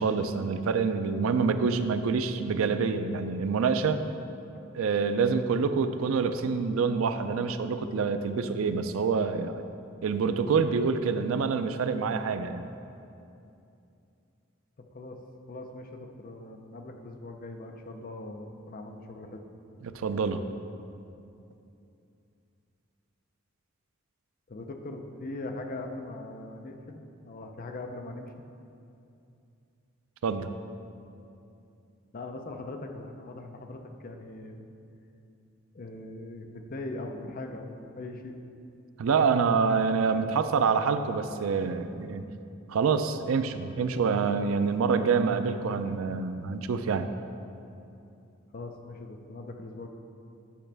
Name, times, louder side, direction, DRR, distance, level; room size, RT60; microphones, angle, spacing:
voice 1, 0.0-4.0 4.7-9.6 10.0-12.7 19.8-20.4 30.2-30.5 39.0-42.3 42.7-47.1, right 5 dB, 85° right, 9 dB, 0.4 m, -26 dB
voice 2, 14.8-15.2 15.5-19.4 24.5-28.3 32.1-34.7 35.7-38.3 48.5-49.9, left 2 dB, 45° left, 4 dB, 0.6 m, -40 dB
8.5 x 6.0 x 3.4 m, 2.6 s
head